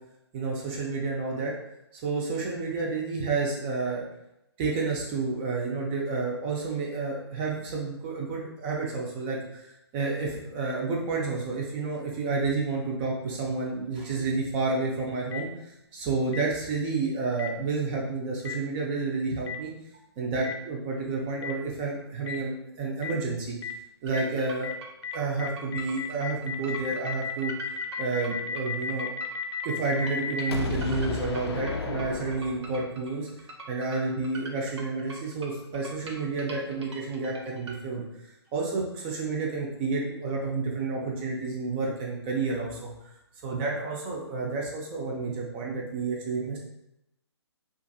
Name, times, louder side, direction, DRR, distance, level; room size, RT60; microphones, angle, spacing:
voice 1, 0.3-1.5 2.0-4.0 4.6-19.7 20.2-23.6 24.0-24.7 25.1-27.5 28.0-29.1 29.6-33.3 33.7-38.0 38.5-42.9 43.4-46.6, right 3 dB, 20° right, -2 dB, 0.4 m, -30 dB
Boom, 15.3-15.4 16.3-16.4 17.4-17.5 18.4-18.5 19.5-19.6 20.4-20.5 21.4-21.5 22.3-22.4 23.0-23.1 23.6-23.7 24.1-24.2 24.6-24.7 25.0-25.1 25.4-32.9, left 6 dB, 65° left, 0.4 m, -33 dB
sound 1, 24.1-37.8, right 2 dB, 75° right, 0.6 m, -44 dB
2.5 x 2.4 x 2.6 m, 0.87 s
figure-of-eight pair, 135°, 15 cm